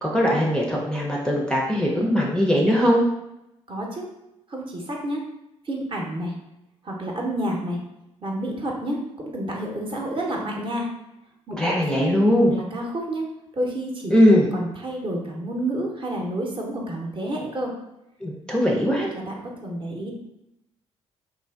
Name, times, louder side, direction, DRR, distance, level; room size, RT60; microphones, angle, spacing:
voice 1, 0.0-3.0 11.5-12.5 14.1-14.5 18.2-19.1, equal, 5° left, -3 dB, 0.5 m, -20 dB
voice 2, 3.7-4.1 4.5-5.2 5.7-6.3 6.8-7.8 8.2-10.9 11.5-12.2 12.5-13.2 13.5-14.1 14.5-17.7 18.8-20.1, right 1 dB, 35° right, -1 dB, 0.7 m, -29 dB
3.2 x 2.4 x 2.3 m, 0.87 s
figure-of-eight pair, 45°, 16 cm